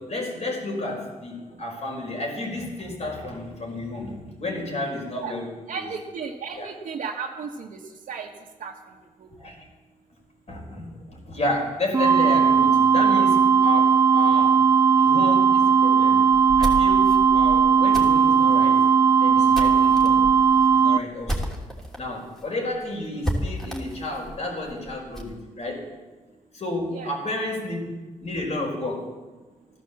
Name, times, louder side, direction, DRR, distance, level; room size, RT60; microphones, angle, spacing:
voice 1, 0.0-5.9 6.5-6.7 9.4-9.7 10.5-14.6 14.9-16.2 16.6-18.8 19.2-20.3 20.7-21.5 22.0-25.9 26.5-27.9 28.2-29.1, left 2 dB, 55° left, 0 dB, 5.0 m, -31 dB
voice 2, 5.7-7.8 8.1-8.3 8.6-8.7 26.9-27.1, right 6 dB, 80° right, -2 dB, 1.4 m, -34 dB
sound 1, 11.9-21.0, right 6 dB, 20° right, 0.4 m, -17 dB
sound 2, 16.3-22.0 22.4-22.5 22.7-22.8 23.2-25.4, equal, 5° left, 3.0 m, -33 dB
15.0 x 11.5 x 7.3 m, 1.2 s
cardioid pair, 90°, 14 cm